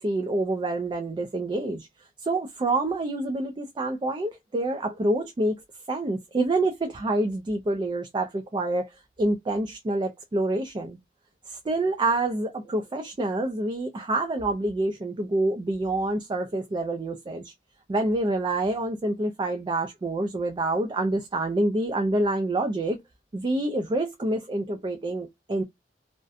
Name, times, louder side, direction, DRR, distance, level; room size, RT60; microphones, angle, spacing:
voice 1, 0.0-1.9 2.2-5.5 5.9-11.0 11.5-17.5 17.9-23.0 23.3-25.6, right 2 dB, 25° right, 0.3 m, -27 dB
2.3 x 2.1 x 2.5 m
head